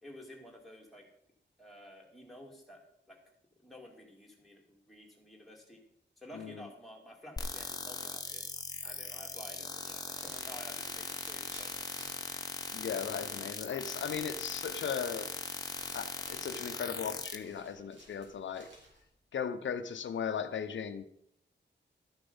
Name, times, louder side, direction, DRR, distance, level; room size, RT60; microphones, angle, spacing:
voice 1, 0.0-1.1 1.6-2.8 3.1-3.2 3.6-5.8 6.2-8.5 8.8-11.7, equal, ahead, -2 dB, 2.4 m, -51 dB
voice 2, 6.3-6.7 12.7-15.3 15.9-18.7 19.3-21.0, left 7 dB, 85° left, 8 dB, 0.8 m, -37 dB
sound 1, 7.4-17.4, left 3 dB, 20° left, 1.0 m, -40 dB
sound 2, 10.1-19.1, right 1 dB, 80° right, 4.2 m, -57 dB
12.5 x 6.9 x 5.5 m, 0.71 s
wide cardioid pair, 175°, 19 cm